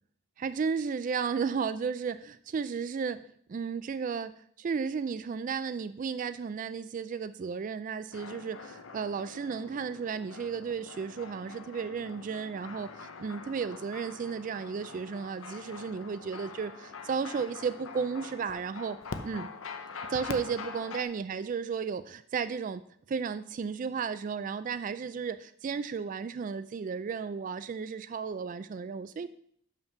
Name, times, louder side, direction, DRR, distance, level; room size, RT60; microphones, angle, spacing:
voice 1, 0.4-3.2 3.5-19.0 19.2-19.5 20.1-22.8 23.1-29.3, right 5 dB, 40° right, 13 dB, 0.3 m, -34 dB
sound 1, 8.1-21.0, left 4 dB, 85° left, 0.7 m, -44 dB
5.9 x 5.7 x 6.6 m, 0.63 s
head